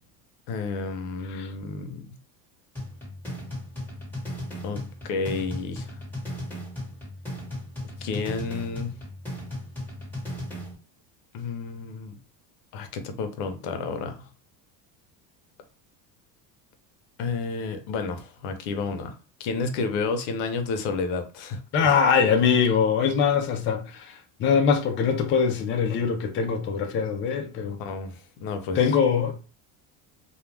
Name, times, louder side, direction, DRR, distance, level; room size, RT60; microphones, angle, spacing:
voice 1, 0.5-2.0 4.6-5.9 8.0-9.0 11.3-12.2 12.7-14.3 17.2-22.0 27.8-28.9, left 4 dB, 75° left, 0.7 m, -31 dB
sound 1, 2.8-10.8, left 1 dB, 5° left, 1.3 m, -36 dB
voice 2, 21.7-24.1 24.4-27.8 28.8-29.4, left 6 dB, 30° left, 0.4 m, -22 dB
2.4 x 2.2 x 3.2 m
cardioid pair, 120°, 44 cm